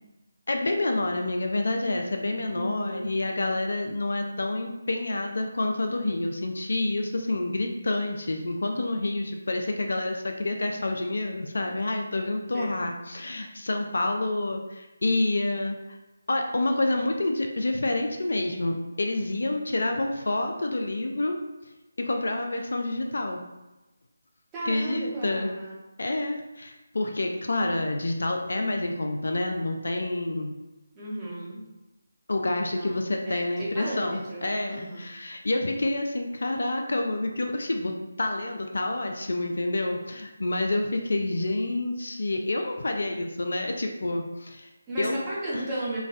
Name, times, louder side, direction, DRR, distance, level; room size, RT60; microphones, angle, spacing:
voice 1, 0.5-15.8 16.3-21.4 22.0-23.4 24.7-25.5 26.0-30.5 32.3-44.7 45.0-45.2 45.5-45.6, left 2 dB, 65° left, 3 dB, 0.3 m, -28 dB
voice 2, 2.5-3.1 12.5-12.8 24.5-25.8 30.9-31.6 32.7-35.1 44.9-46.0, right 1 dB, 15° right, -9 dB, 0.9 m, -34 dB
3.0 x 2.1 x 2.5 m, 1.0 s
figure-of-eight pair, 155°, 0 cm